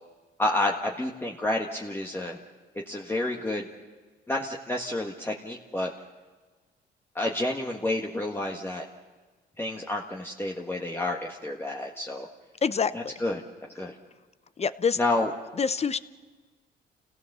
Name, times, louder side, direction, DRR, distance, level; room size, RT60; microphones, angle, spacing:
voice 1, 0.4-2.4 2.9-3.7 4.3-5.9 7.2-8.8 9.6-12.3 12.9-13.4 13.8-13.9 15.0-15.3, left 2 dB, 10° left, -1 dB, 1.6 m, -29 dB
voice 2, 12.6-13.1 14.6-15.0 15.6-16.0, left 6 dB, 30° left, 14 dB, 0.8 m, -26 dB
28.0 x 17.5 x 6.8 m, 1.4 s
cardioid pair, 90°, 20 cm